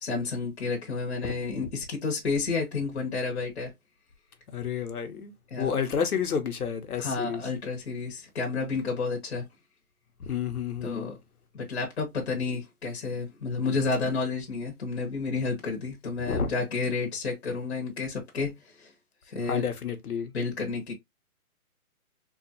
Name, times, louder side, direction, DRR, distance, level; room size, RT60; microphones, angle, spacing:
voice 1, 0.0-3.7 5.5-5.7 7.0-9.5 10.8-11.2 11.5-18.9 19.3-19.6 20.3-20.9, left 4 dB, 50° left, 1.2 m, -31 dB
voice 2, 4.5-5.3 5.6-7.4 10.3-11.1 16.3-16.5 19.5-20.3, left 7 dB, 90° left, 1.1 m, -30 dB
3.6 x 2.5 x 2.8 m
hypercardioid pair, 175°, 44 cm